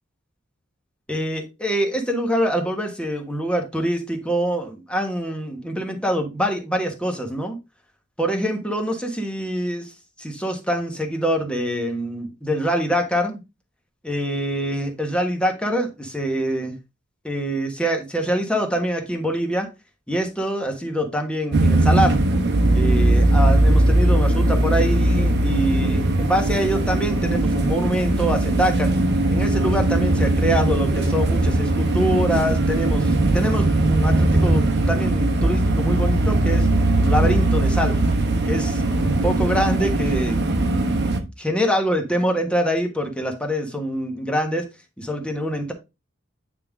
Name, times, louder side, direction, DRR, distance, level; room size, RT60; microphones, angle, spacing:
voice 1, 1.1-7.6 8.2-9.9 10.2-13.4 14.0-16.7 17.2-19.7 20.1-22.2 22.7-28.9 29.3-36.7 37.0-38.0 38.5-40.4 40.6-41.0 41.4-44.6 45.0-45.7, equal, 5° left, 1.3 m, -24 dB
sound 1, 21.5-41.2, right 1 dB, 55° right, 1.0 m, -19 dB
8.9 x 3.7 x 3.6 m
head